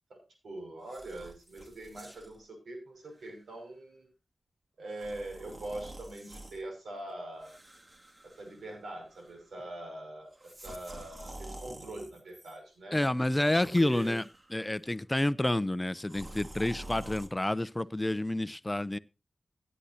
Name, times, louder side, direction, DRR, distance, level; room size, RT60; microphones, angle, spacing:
voice 1, 0.1-4.1 4.8-7.5 8.2-13.0 13.8-14.1, right 1 dB, 90° right, 6.1 m, -43 dB
sound 1, 0.8-2.4 3.1-3.3 4.9-6.6 7.4-8.8 9.1-9.5 10.3-12.6 13.3-14.7 16.0-17.3, right 1 dB, 35° right, 2.4 m, -48 dB
voice 2, 12.9-19.0, left 1 dB, 20° left, 0.7 m, -29 dB
17.0 x 9.9 x 2.8 m
cardioid pair, 55°, 0 cm